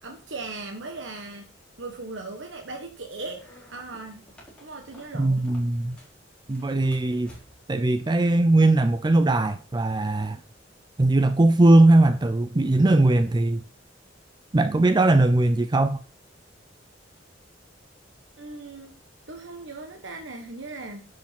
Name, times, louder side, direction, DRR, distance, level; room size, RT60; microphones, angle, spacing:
voice 1, 0.0-1.5 1.8-3.4 3.7-4.3 4.6-5.5 18.4-18.9 19.3-21.1, right 3 dB, 70° right, 1.4 m, -38 dB
sound 1, 3.3-6.2 6.5-7.8, equal, 5° left, 4.4 m, -52 dB
voice 2, 5.2-6.0 6.5-7.3 7.7-10.4 11.0-13.6 14.5-16.0, right 2 dB, 25° right, 0.5 m, -20 dB
10.0 x 6.4 x 5.8 m
head